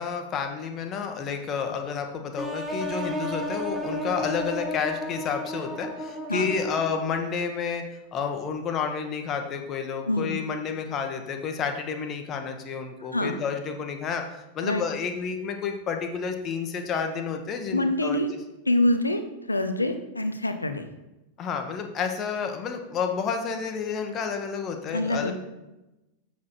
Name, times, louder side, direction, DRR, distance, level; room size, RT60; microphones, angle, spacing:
voice 1, 0.0-7.8 8.1-18.2 21.4-25.3, left 6 dB, 30° left, 5 dB, 1.0 m, -30 dB
sound 1, 2.4-7.2, equal, 5° right, 1.2 m, -33 dB
voice 2, 17.7-18.3 18.7-19.2 19.5-20.8 24.9-25.3, left 1 dB, 85° left, 8 dB, 0.7 m, -25 dB
7.3 x 6.5 x 4.3 m, 0.99 s
figure-of-eight pair, 90°, 0 cm